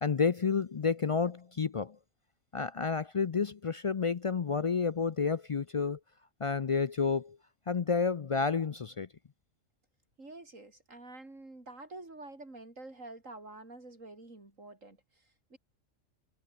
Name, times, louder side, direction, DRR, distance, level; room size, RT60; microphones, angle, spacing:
voice 1, 0.0-2.0 2.5-6.0 6.4-7.4 7.7-9.1, left 5 dB, 60° left, 0.3 m, -30 dB
voice 2, 10.2-15.6, right 2 dB, 90° right, 5.5 m, -48 dB
omnidirectional pair, 1.3 m